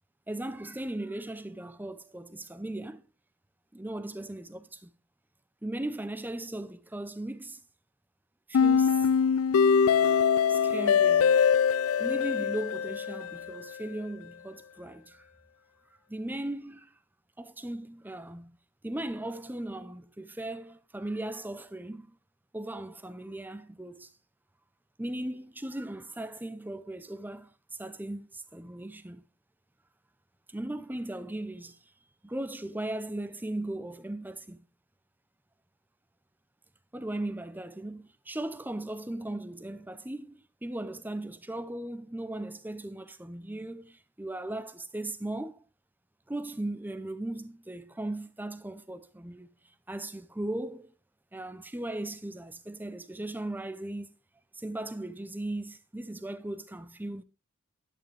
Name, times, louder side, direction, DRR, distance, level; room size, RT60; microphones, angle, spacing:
voice 1, 0.3-3.1 3.7-4.9 5.6-7.6 8.5-9.1 10.5-11.4 12.0-15.3 16.1-16.9 17.4-18.6 18.8-22.2 22.5-24.1 25.0-27.5 27.8-29.2 30.5-31.8 32.2-34.6 36.9-45.6 46.3-49.5 49.9-50.9 51.3-54.1 54.5-57.2, right 1 dB, 10° right, 0.6 m, -37 dB
sound 1, 8.5-13.6, left 6 dB, 75° left, 0.4 m, -23 dB
11.5 x 8.9 x 3.4 m
head